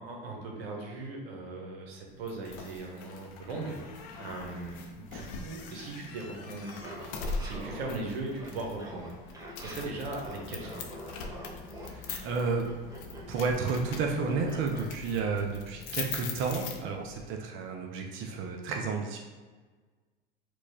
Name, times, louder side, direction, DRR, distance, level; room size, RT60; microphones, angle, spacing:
voice 1, 0.0-3.8 4.2-7.1 7.4-10.9, right 2 dB, 85° right, 0 dB, 0.9 m, -39 dB
sound 1, 2.3-17.2, left 4 dB, 60° left, 0.6 m, -42 dB
Laughter, 6.6-14.9, right 1 dB, 10° right, 0.8 m, -46 dB
voice 2, 11.8-12.7 13.3-19.2, right 4 dB, 45° right, 1 dB, 0.5 m, -31 dB
4.5 x 2.3 x 2.7 m, 1.4 s
hypercardioid pair, 90°, 30 cm